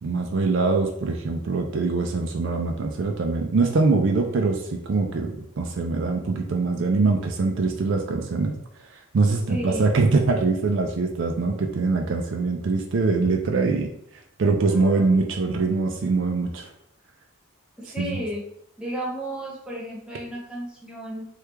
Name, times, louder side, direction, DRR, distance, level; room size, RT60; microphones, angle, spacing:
voice 1, 0.0-8.6 9.1-13.9 14.4-16.7 18.0-18.2, right 3 dB, 60° right, 3 dB, 0.4 m, -23 dB
voice 2, 9.5-9.9 14.7-15.1 17.8-18.4 18.8-21.3, equal, 5° right, -5 dB, 0.8 m, -33 dB
3.1 x 2.4 x 3.3 m, 0.72 s
head